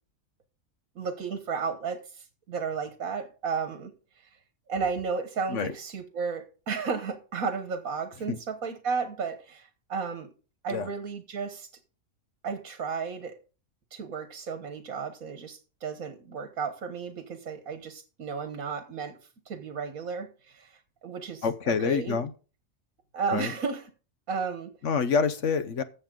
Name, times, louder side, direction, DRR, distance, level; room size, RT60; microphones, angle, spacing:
voice 1, 0.9-3.9 4.7-10.3 10.6-11.7 12.4-13.4 13.9-19.2 19.5-22.2 23.1-23.9 24.3-24.7, right 5 dB, 80° right, 1.7 m, -33 dB
voice 2, 21.4-22.3 23.3-23.5 24.8-25.8, left 5 dB, 60° left, 1.2 m, -27 dB
14.5 x 7.0 x 3.8 m
omnidirectional pair, 1.4 m